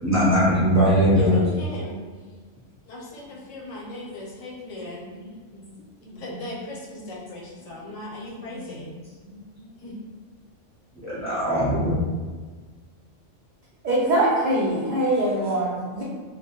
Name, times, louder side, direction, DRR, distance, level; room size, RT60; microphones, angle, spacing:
voice 1, 0.0-1.4 5.5-5.7 6.0-6.2 8.3-8.6 9.2-9.6 11.0-12.0, equal, 20° right, -10 dB, 0.5 m, -21 dB
voice 2, 1.1-2.0 2.9-5.1 6.2-9.0 9.8-10.0, left 1 dB, 80° left, -3 dB, 1.0 m, -37 dB
voice 3, 13.8-16.0, right 1 dB, 70° right, -7 dB, 0.4 m, -22 dB
2.2 x 2.2 x 2.9 m, 1.4 s
omnidirectional pair, 1.3 m